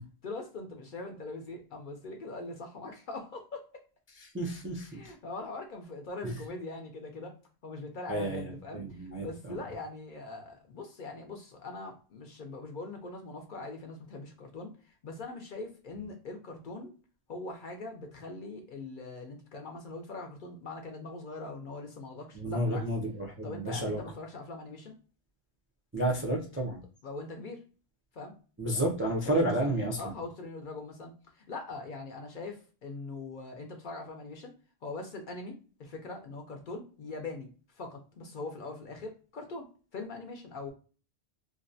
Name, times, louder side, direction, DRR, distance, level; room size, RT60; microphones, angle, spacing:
voice 1, 0.2-3.7 4.9-7.4 7.6-14.7 15.0-16.9 17.3-22.9 23.4-24.9 27.0-27.6 28.1-28.3 29.2-34.5 34.8-35.5 35.8-37.5 37.8-39.7 39.9-40.7, left 3 dB, 60° left, 3 dB, 0.6 m, -42 dB
voice 2, 4.2-5.0 8.1-9.6 22.3-24.0 25.9-26.8 28.6-30.1, right 1 dB, 20° right, -2 dB, 0.3 m, -31 dB
2.6 x 2.0 x 2.6 m, 0.37 s
omnidirectional pair, 1.1 m